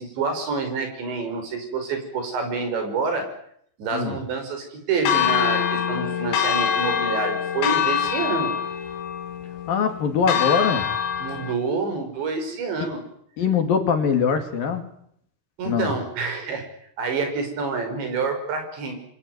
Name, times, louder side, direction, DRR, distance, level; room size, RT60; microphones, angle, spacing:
voice 1, 0.0-3.3 3.8-8.5 11.2-13.0 15.6-16.6 17.0-19.0, right 4 dB, 85° right, 6 dB, 7.9 m, -27 dB
Church bell, 5.0-11.5, left 8 dB, 85° left, 4.1 m, -24 dB
voice 2, 9.7-10.9 12.8-12.9 13.4-14.9 15.7-15.9, left 6 dB, 60° left, 7 dB, 4.0 m, -22 dB
28.0 x 22.5 x 9.5 m, 0.69 s
omnidirectional pair, 5.0 m